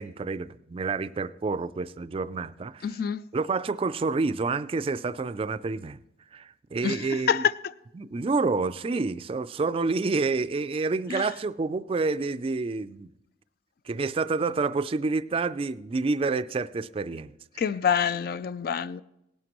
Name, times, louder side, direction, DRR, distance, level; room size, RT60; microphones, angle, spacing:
voice 1, 0.0-2.9 3.3-6.0 6.3-7.5 8.0-13.1 13.9-17.3, right 3 dB, 30° right, 0.3 m, -28 dB
voice 2, 2.8-3.2 6.8-7.5 11.1-11.3 17.6-19.0, left 7 dB, 60° left, 0.3 m, -26 dB
18.0 x 11.0 x 3.0 m
head